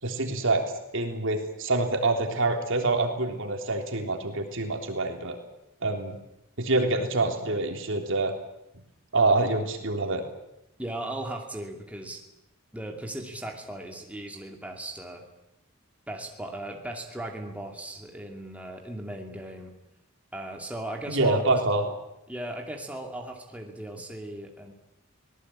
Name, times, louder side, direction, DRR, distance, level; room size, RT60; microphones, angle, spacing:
voice 1, 0.0-0.6 0.9-5.4 5.8-6.2 6.6-8.3 9.1-10.2 21.1-21.8, right 2 dB, 60° right, 4 dB, 3.5 m, -26 dB
voice 2, 10.8-12.2 12.7-15.2 16.1-19.7 20.3-21.4 21.7-21.9 22.3-24.7, right 1 dB, 5° right, 1 dB, 2.5 m, -37 dB
24.5 x 18.5 x 8.7 m, 0.86 s
head